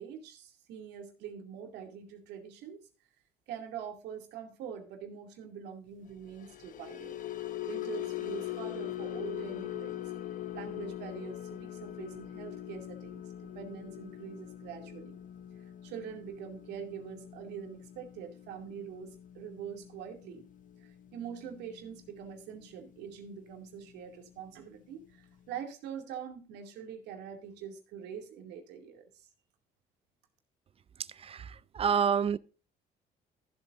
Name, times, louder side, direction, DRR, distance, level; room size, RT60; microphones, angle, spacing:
voice 1, 0.0-2.9 3.5-7.1 7.7-10.0 10.5-15.2 15.8-20.5 21.1-29.3, right 8 dB, 85° right, 2.4 m, -44 dB
sound 1, 6.2-22.6 23.0-23.3 23.6-23.8, left 13 dB, 50° left, 0.9 m, -42 dB
voice 2, 31.2-32.4, right 7 dB, 35° right, 0.5 m, -28 dB
15.0 x 7.9 x 2.5 m
cardioid pair, 110°, 17 cm